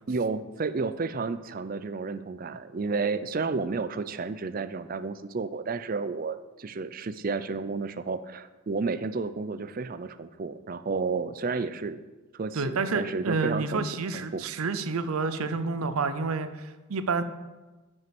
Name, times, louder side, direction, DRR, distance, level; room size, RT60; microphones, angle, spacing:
voice 1, 0.1-12.0 12.3-13.8 14.1-14.4, right 4 dB, 40° right, 13 dB, 0.4 m, -31 dB
voice 2, 12.5-17.2, right 4 dB, 75° right, 11 dB, 0.6 m, -29 dB
9.2 x 6.3 x 6.0 m, 1.2 s
head